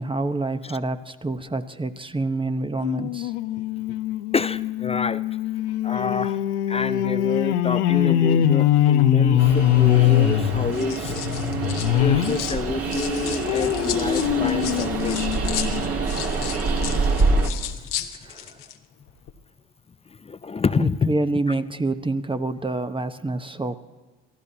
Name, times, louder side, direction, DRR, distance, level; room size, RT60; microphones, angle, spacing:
voice 1, 0.0-3.3 18.0-18.6 20.8-23.8, right 2 dB, 15° right, 9 dB, 0.9 m, -27 dB
sound 1, 2.8-12.4 12.9-15.9 16.4-16.5 16.8-16.9, left 11 dB, 90° left, 0.8 m, -22 dB
voice 2, 4.3-5.2 5.8-6.4 6.7-11.2 11.9-15.2 20.2-21.1, left 5 dB, 20° left, 15 dB, 0.5 m, -27 dB
sound 2, 9.1-9.6 10.5-12.6 12.9-18.8 19.0-19.3, left 11 dB, 70° left, 1.2 m, -35 dB
Train, 9.4-17.5, right 3 dB, 45° right, 2.0 m, -26 dB
29.0 x 15.0 x 2.8 m, 1.3 s
hypercardioid pair, 65°, 33 cm